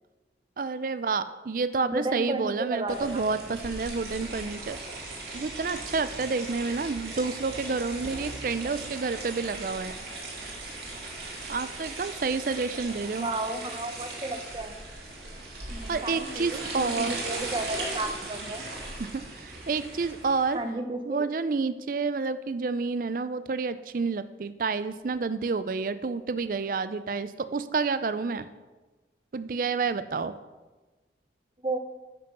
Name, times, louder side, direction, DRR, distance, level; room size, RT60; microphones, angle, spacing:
voice 1, 0.6-4.8 5.3-9.9 11.5-13.3 15.9-17.2 18.4-18.5 19.0-19.1 19.4-20.6 21.1-28.5 29.3-30.3, right 4 dB, 50° right, 13 dB, 0.4 m, -29 dB
voice 2, 1.8-3.2 13.1-14.8 15.7-18.6 20.5-21.3 31.6-31.8, right 2 dB, 25° right, 6 dB, 0.8 m, -33 dB
sound 1, 2.9-20.6, right 2 dB, 65° right, 2.4 m, -38 dB
9.4 x 5.9 x 6.1 m, 1.2 s
head